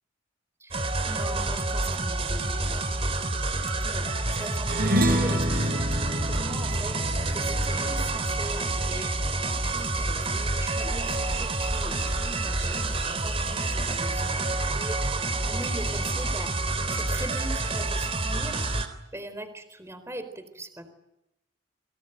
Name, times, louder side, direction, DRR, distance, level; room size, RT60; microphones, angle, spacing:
voice 1, 0.6-2.9 3.8-6.9 7.3-9.1 9.6-16.5 16.9-18.6 19.1-20.9, right 1 dB, 15° right, 9 dB, 4.1 m, -41 dB
sound 1, 0.7-18.9, right 2 dB, 30° right, 3.6 m, -28 dB
sound 2, 4.7-9.4, equal, 50° right, 6.5 m, -28 dB
30.0 x 24.0 x 8.0 m, 0.88 s
head